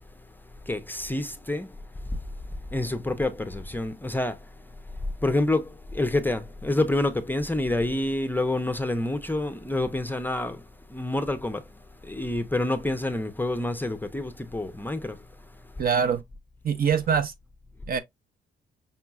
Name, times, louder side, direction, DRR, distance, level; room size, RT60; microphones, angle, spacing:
voice 1, 0.7-1.7 2.7-4.4 5.2-10.6 10.9-11.6 12.0-15.2, left 2 dB, 10° left, 0.5 m, -27 dB
voice 2, 15.8-16.2 16.6-17.3 17.9-18.0, right 7 dB, 50° right, 0.6 m, -23 dB
5.4 x 2.9 x 2.3 m
cardioid pair, 90°, 20 cm